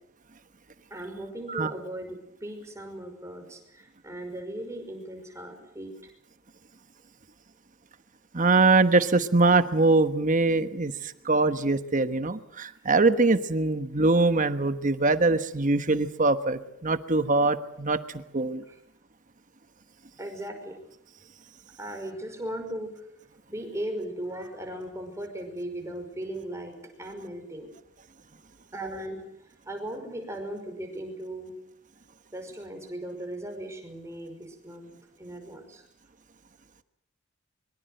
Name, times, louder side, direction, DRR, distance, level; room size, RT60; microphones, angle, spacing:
voice 1, 0.9-6.1 18.7-18.8 20.2-20.8 21.8-23.0 23.5-27.7 28.7-31.6 32.3-34.9 35.2-35.8, right 1 dB, 15° right, 4 dB, 5.5 m, -37 dB
voice 2, 8.3-18.6, right 3 dB, 35° right, 11 dB, 1.2 m, -23 dB
24.5 x 23.5 x 7.9 m, 0.74 s
head